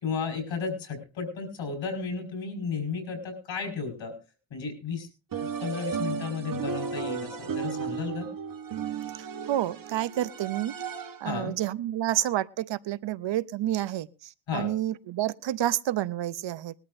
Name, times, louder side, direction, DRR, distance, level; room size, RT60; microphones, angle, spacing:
voice 1, 0.0-4.1 4.5-5.1 5.6-8.3 11.2-11.6 14.5-14.7, left 5 dB, 90° left, 3 dB, 5.3 m, -33 dB
sound 1, 5.3-11.4, right 6 dB, 50° right, 1.3 m, -34 dB
voice 2, 9.5-10.7 11.2-14.1 14.5-16.7, right 13 dB, 75° right, 18 dB, 0.7 m, -29 dB
21.0 x 12.5 x 2.6 m, 0.31 s
wide cardioid pair, 115°, 44 cm